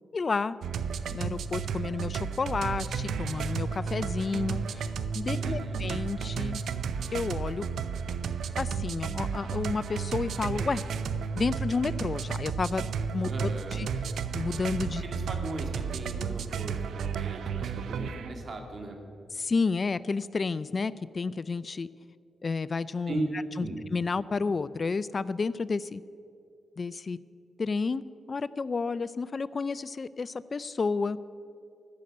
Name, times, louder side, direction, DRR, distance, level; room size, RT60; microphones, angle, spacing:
voice 1, 0.1-0.6 1.1-6.6 7.1-7.7 8.6-10.8 11.4-12.8 13.1-13.9 14.3-15.0 19.4-21.9 22.4-23.2 23.6-23.7 23.9-26.0 26.8-27.2 27.6-28.0 28.3-31.2, left 4 dB, 45° left, 18 dB, 0.4 m, -31 dB
sound 1, 0.6-18.5, right 6 dB, 80° right, 0.6 m, -33 dB
voice 2, 5.4-6.0 13.3-13.9 15.0-19.0 23.1-23.3 23.6-23.8, right 2 dB, 50° right, 4 dB, 2.3 m, -38 dB
13.5 x 6.6 x 9.5 m, 2.4 s
cardioid pair, 65°, 0 cm